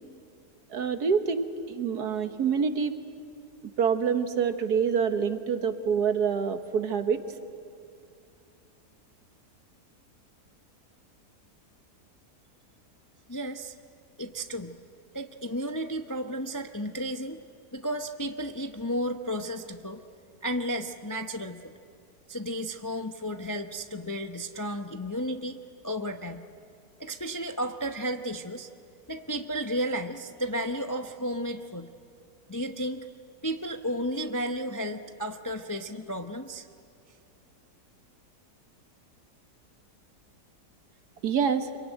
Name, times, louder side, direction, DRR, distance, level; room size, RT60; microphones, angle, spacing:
voice 1, 0.7-2.9 3.8-7.2 41.2-41.7, right 6 dB, 75° right, 8 dB, 1.7 m, -26 dB
voice 2, 13.3-13.7 14.2-14.8 15.1-17.4 17.7-20.0 20.4-21.7 22.3-25.6 25.8-26.4 27.0-28.7 29.1-31.9 32.5-33.1 33.4-36.7, equal, 20° left, 6 dB, 0.5 m, -33 dB
26.0 x 23.0 x 9.1 m, 2.4 s
omnidirectional pair, 1.7 m